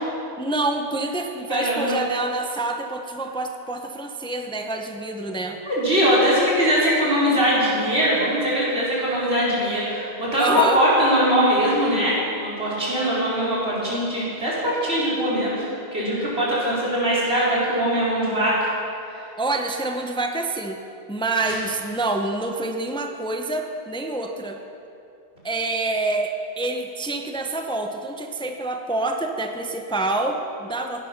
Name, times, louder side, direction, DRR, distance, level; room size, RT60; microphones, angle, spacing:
voice 1, 0.4-5.6 10.4-10.8 19.4-20.8 21.1-24.6 25.4-31.1, right 2 dB, 5° left, 4 dB, 0.7 m, -27 dB
voice 2, 1.5-1.9 5.6-15.7 15.9-18.7 21.4-21.5, equal, 80° right, -8 dB, 4.7 m, -21 dB
16.5 x 10.5 x 5.9 m, 2.7 s
omnidirectional pair, 1.1 m